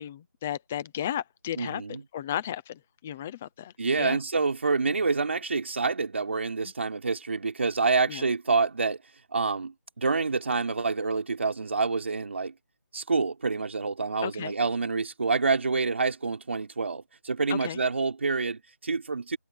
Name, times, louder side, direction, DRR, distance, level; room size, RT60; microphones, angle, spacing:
voice 1, 0.0-4.2 6.6-6.7 8.1-8.2 14.2-14.5 17.5-17.8, left 10 dB, 5° left, 0.5 m, -34 dB
voice 2, 1.6-2.0 3.8-9.0 9.3-12.5 12.9-19.4, right 4 dB, 40° right, 4.6 m, -27 dB
figure-of-eight pair, 175°, 10 cm